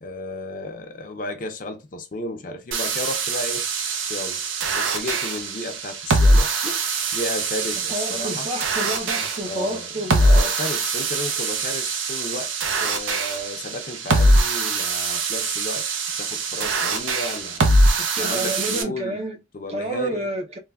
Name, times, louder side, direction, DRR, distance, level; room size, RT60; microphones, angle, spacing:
voice 1, 0.0-3.7 4.0-4.5 4.7-8.5 9.5-12.5 12.8-17.7 18.2-19.2 19.5-20.3, left 2 dB, 45° left, 0.5 m, -33 dB
sound 1, 2.7-18.8, right 2 dB, 85° right, 0.5 m, -23 dB
voice 2, 7.9-10.3 18.0-19.4 19.7-20.6, right 1 dB, 35° right, 0.5 m, -29 dB
3.2 x 2.1 x 2.3 m
head